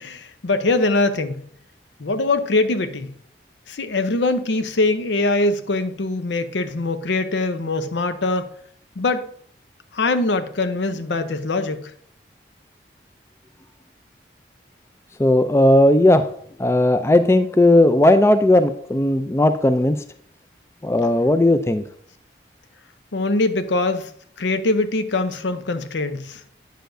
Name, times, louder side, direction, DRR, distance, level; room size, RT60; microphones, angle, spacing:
voice 1, 0.0-1.4 2.0-3.1 3.7-8.5 9.0-9.3 9.9-11.9 23.1-24.1 24.4-26.4, left 2 dB, 80° left, 0.6 m, -22 dB
voice 2, 15.2-16.3 16.6-20.0 20.8-21.8, left 1 dB, 15° left, 0.3 m, -16 dB
9.1 x 6.7 x 2.6 m
head